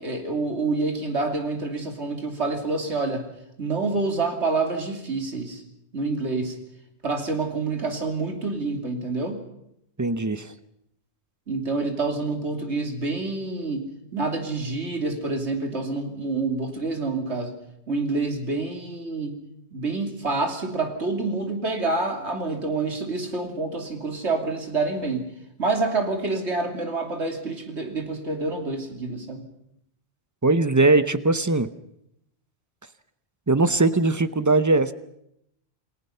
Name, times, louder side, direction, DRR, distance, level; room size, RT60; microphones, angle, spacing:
voice 1, 0.0-3.3 3.6-5.6 5.9-6.6 7.0-9.4 11.5-17.5 17.9-19.4 19.7-25.3 25.6-29.4, right 3 dB, 90° right, 4 dB, 3.0 m, -27 dB
voice 2, 10.0-10.5 30.4-31.7 33.5-34.9, right 3 dB, 20° right, 13 dB, 0.7 m, -20 dB
28.5 x 18.5 x 5.7 m, 0.78 s
omnidirectional pair, 1.1 m